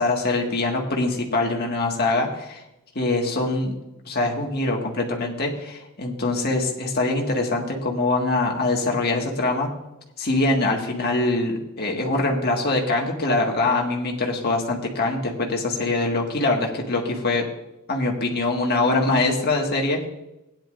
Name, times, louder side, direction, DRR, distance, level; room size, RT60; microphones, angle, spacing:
voice 1, 0.0-2.6 3.0-3.7 4.1-9.7 10.2-17.5 17.9-20.0, left 2 dB, 45° left, 0 dB, 1.8 m, -23 dB
16.0 x 10.5 x 2.6 m, 0.91 s
head